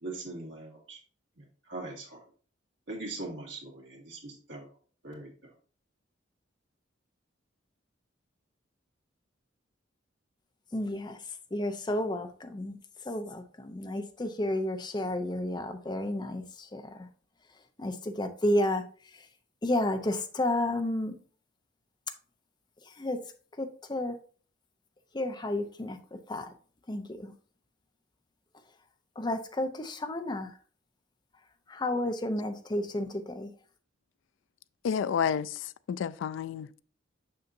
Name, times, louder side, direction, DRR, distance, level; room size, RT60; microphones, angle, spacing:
voice 1, 0.0-1.0 1.4-2.2 2.9-4.7 5.0-5.5, right 2 dB, 75° right, 2.2 m, -41 dB
voice 2, 10.7-11.2 11.5-12.8 13.0-17.1 17.8-18.8 19.6-21.1 22.9-23.2 23.6-24.2 25.1-26.5 26.9-27.3 29.2-30.5 31.7-33.5, left 1 dB, 25° left, 0.6 m, -31 dB
voice 3, 34.8-36.8, left 7 dB, 75° left, 0.3 m, -30 dB
6.6 x 5.6 x 2.6 m
head